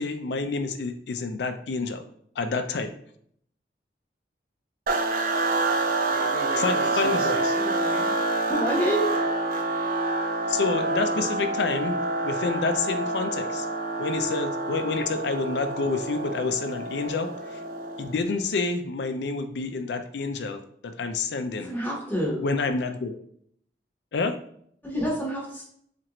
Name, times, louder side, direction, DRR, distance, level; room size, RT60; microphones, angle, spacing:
voice 1, 0.0-2.0 2.4-2.9 6.6-7.4 10.5-12.0 12.2-13.7 14.0-17.6 18.0-21.7 22.4-23.2 24.1-24.3, left 4 dB, 70° left, 8 dB, 0.4 m, -28 dB
sound 1, 4.9-18.3, right 2 dB, 50° right, 0.4 m, -27 dB
voice 2, 6.1-8.1, left 1 dB, 30° right, -6 dB, 1.0 m, -37 dB
voice 3, 8.5-9.2 21.6-22.4 24.8-25.6, equal, 10° left, -4 dB, 0.9 m, -27 dB
4.3 x 2.5 x 2.9 m, 0.65 s
head